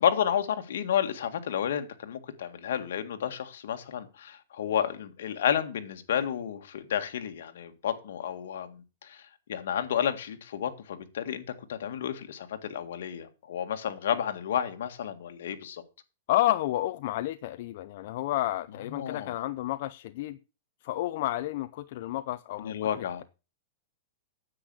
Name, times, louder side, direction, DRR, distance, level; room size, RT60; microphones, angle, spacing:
voice 1, 0.0-11.4 11.7-15.8 18.9-19.4 22.6-23.2, left 9 dB, 75° left, 1.9 m, -31 dB
voice 2, 16.3-20.4 20.8-23.2, left 15 dB, 50° left, 0.6 m, -30 dB
9.8 x 8.2 x 6.2 m
supercardioid pair, 160°, 0 cm